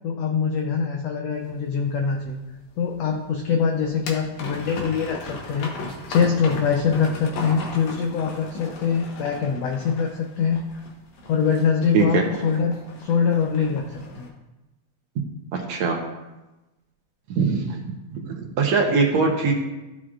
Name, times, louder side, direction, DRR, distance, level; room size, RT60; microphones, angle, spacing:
voice 1, 0.0-2.4 2.8-5.7 6.1-10.8 11.3-12.7 13.0-14.3, left 6 dB, 85° left, 3 dB, 1.4 m, -23 dB
sound 1, 1.4-14.3, left 2 dB, 65° left, 2.4 m, -37 dB
voice 2, 11.9-12.2 15.5-16.0 17.3-17.8 18.1-19.5, right 5 dB, 70° right, 1 dB, 1.8 m, -22 dB
14.0 x 6.2 x 2.4 m, 1.0 s
omnidirectional pair, 3.7 m